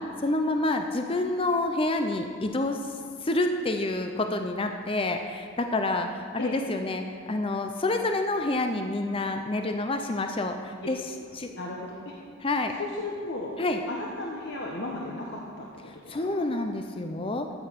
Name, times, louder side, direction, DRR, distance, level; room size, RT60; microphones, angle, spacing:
voice 1, 0.0-2.8 3.2-11.0 11.3-11.5 12.4-12.7 13.6-13.8 15.9-17.5, left 2 dB, 25° left, 5 dB, 0.6 m, -28 dB
voice 2, 11.5-12.1 12.8-13.5 13.9-16.4, left 2 dB, 55° left, -2 dB, 1.2 m, -35 dB
13.5 x 8.6 x 5.2 m, 2.3 s
head